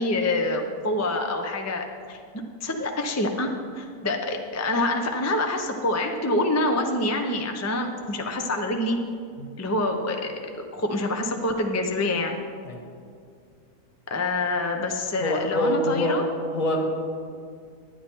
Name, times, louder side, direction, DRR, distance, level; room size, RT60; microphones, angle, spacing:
voice 1, 0.0-2.2 2.6-9.0 9.6-10.3 10.7-12.4 14.1-16.2, left 2 dB, 20° left, 4 dB, 0.4 m, -26 dB
voice 2, 15.2-16.1 16.5-16.8, left 1 dB, 60° left, 1 dB, 1.9 m, -25 dB
11.0 x 10.0 x 4.5 m, 2.2 s
omnidirectional pair, 1.6 m